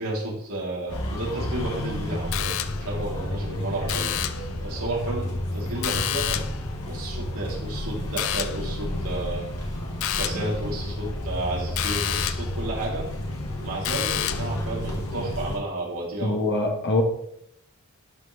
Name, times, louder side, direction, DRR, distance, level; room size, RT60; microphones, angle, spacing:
voice 1, 0.0-2.5 2.8-6.5 6.9-9.8 10.2-13.1 13.6-16.4, right 1 dB, 70° right, -5 dB, 3.7 m, -32 dB
sound 1, 0.9-15.6, left 1 dB, 85° left, 1.7 m, -31 dB
sound 2, 2.3-3.0 3.9-4.5 5.8-6.7 8.2-8.7 10.0-10.5 11.8-12.6 13.8-14.6, left 11 dB, 65° left, 0.5 m, -29 dB
voice 2, 16.2-17.0, left 2 dB, 50° left, 2 dB, 1.6 m, -23 dB
11.5 x 6.1 x 3.5 m, 0.74 s
head